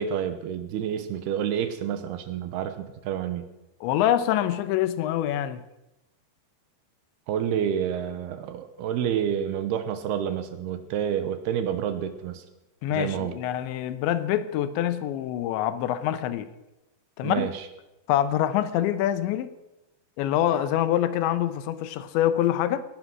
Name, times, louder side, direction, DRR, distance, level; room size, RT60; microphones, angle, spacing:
voice 1, 0.0-3.4 7.3-12.4 12.9-13.4 17.2-17.7, right 9 dB, 70° right, 2.9 m, -29 dB
voice 2, 3.8-5.6 12.8-16.5 17.2-17.5 18.1-19.5 20.2-22.9, left 11 dB, 90° left, 3.2 m, -25 dB
19.5 x 12.0 x 6.2 m
omnidirectional pair, 5.1 m